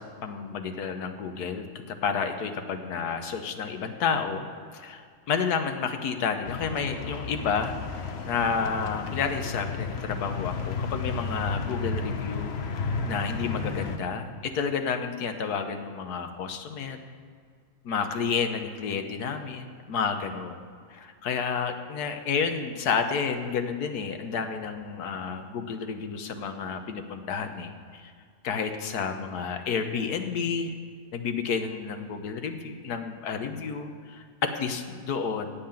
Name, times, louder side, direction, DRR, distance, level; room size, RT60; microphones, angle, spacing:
voice 1, 0.0-4.5 4.7-17.0 17.8-20.6 20.9-28.1 28.4-30.7 31.1-33.9 34.4-35.5, left 6 dB, 80° left, 6 dB, 1.5 m, -30 dB
sound 1, 6.5-14.0, left 4 dB, 50° left, 1.0 m, -32 dB
17.0 x 5.8 x 8.8 m, 2.1 s
omnidirectional pair, 1.6 m